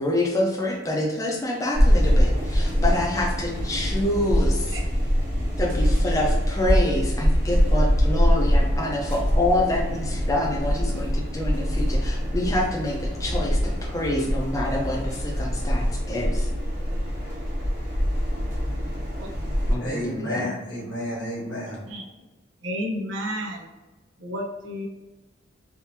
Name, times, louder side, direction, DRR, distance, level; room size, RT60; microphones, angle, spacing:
voice 1, 0.0-4.8 5.6-16.5 19.7-20.5, left 1 dB, 15° left, -1 dB, 0.5 m, -27 dB
sound 1, 1.7-19.8, equal, 45° right, 1.0 m, -23 dB
voice 2, 4.7-5.1 19.2-19.3 21.9-22.1 22.6-23.7 24.2-24.9, equal, 85° right, 1 dB, 0.7 m, -31 dB
voice 3, 19.8-21.9, left 1 dB, 80° left, -5 dB, 1.3 m, -31 dB
3.5 x 2.6 x 2.8 m, 1.1 s
head